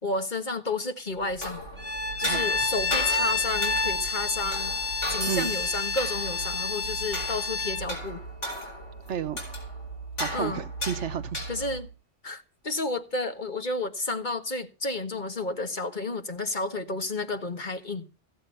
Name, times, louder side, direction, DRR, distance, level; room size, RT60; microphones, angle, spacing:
voice 1, 0.0-1.6 2.2-8.2 10.3-10.6 11.5-11.9 12.2-18.0, left 2 dB, 40° left, 1.6 m, -31 dB
sound 1, 1.2-11.9, right 1 dB, 70° left, 4.7 m, -36 dB
Bowed string instrument, 1.8-7.9, left 3 dB, 10° left, 1.1 m, -29 dB
sound 2, 5.2-8.2, right 4 dB, 25° right, 1.4 m, -43 dB
voice 2, 9.1-9.4 10.2-11.4, right 9 dB, 70° right, 1.1 m, -31 dB
15.0 x 8.7 x 5.6 m
omnidirectional pair, 1.3 m